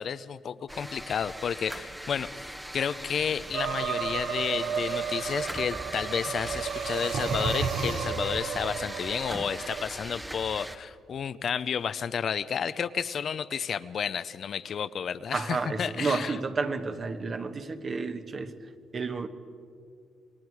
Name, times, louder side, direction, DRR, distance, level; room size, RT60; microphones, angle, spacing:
voice 1, 0.0-2.3 2.7-16.3, left 7 dB, 55° left, 14 dB, 0.5 m, -31 dB
sound 1, 0.7-10.8, right 1 dB, 5° right, 0.9 m, -40 dB
sound 2, 3.1-8.3, right 3 dB, 90° right, 3.0 m, -37 dB
sound 3, 3.5-9.9, right 8 dB, 70° right, 0.5 m, -34 dB
voice 2, 15.3-18.5 18.9-19.3, right 4 dB, 40° right, 8 dB, 1.3 m, -31 dB
28.0 x 21.5 x 4.8 m, 2.3 s
cardioid pair, 90°, 0 cm